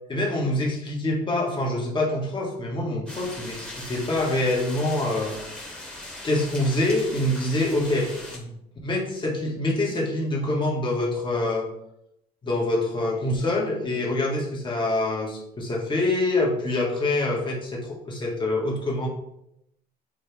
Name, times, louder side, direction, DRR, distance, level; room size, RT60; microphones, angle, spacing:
voice 1, 0.1-5.4 6.2-8.6 8.8-11.7 12.4-19.1, left 2 dB, 30° left, -2 dB, 2.0 m, -25 dB
sound 1, 3.1-8.4, left 1 dB, 5° left, 1.7 m, -39 dB
7.2 x 4.4 x 3.6 m, 0.79 s
cardioid pair, 110°, 17 cm